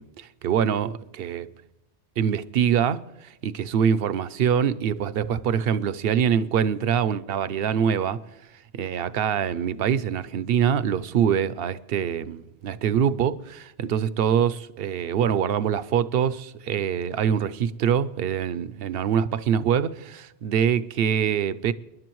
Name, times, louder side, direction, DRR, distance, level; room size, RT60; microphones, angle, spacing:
voice 1, 0.0-1.5 2.2-8.2 8.7-21.7, right 8 dB, 65° right, 0.8 m, -24 dB
29.0 x 11.0 x 3.1 m
omnidirectional pair, 1.1 m